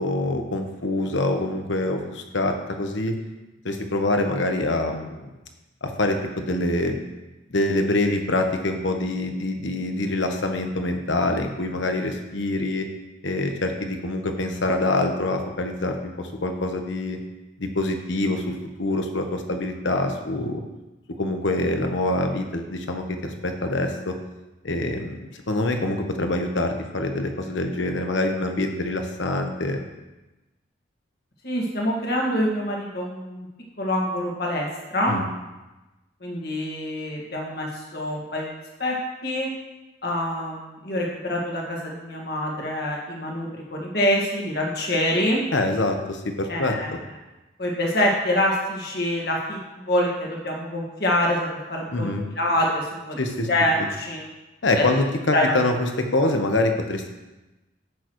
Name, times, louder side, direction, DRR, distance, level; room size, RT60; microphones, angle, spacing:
voice 1, 0.0-3.1 3.6-5.3 5.8-7.0 7.5-12.9 13.2-17.2 17.6-20.6 21.2-24.1 24.6-29.8 35.1-35.3 45.5-46.7 51.9-52.2 53.2-53.5 53.8-53.9 54.6-57.1, left 2 dB, 70° left, 4 dB, 1.1 m, -25 dB
voice 2, 31.4-33.5 33.8-35.2 36.2-38.5 38.8-38.9 39.2-39.5 40.0-45.4 46.5-47.0 47.6-52.1 52.4-53.2 53.5-54.3 54.7-54.8 55.3-55.5 56.2-56.3, left 1 dB, 50° left, -2 dB, 1.9 m, -25 dB
11.0 x 8.4 x 3.1 m, 1.1 s
head